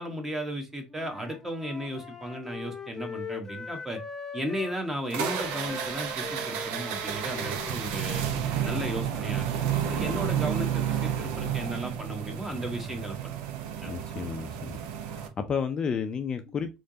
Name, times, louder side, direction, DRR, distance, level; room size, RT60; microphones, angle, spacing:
voice 1, 0.0-4.0 4.3-8.2 8.6-9.5 9.9-13.4 13.8-13.9, equal, 15° right, 1.2 m, -35 dB
Wind instrument woodwind instrument, 0.9-4.8 5.2-9.5, left 4 dB, 15° left, 0.8 m, -42 dB
sound 1, 5.1-15.3, right 9 dB, 75° right, 0.7 m, -31 dB
voice 2, 13.9-16.8, left 6 dB, 35° left, 0.4 m, -32 dB
3.8 x 3.3 x 2.7 m
supercardioid pair, 100°, 2 cm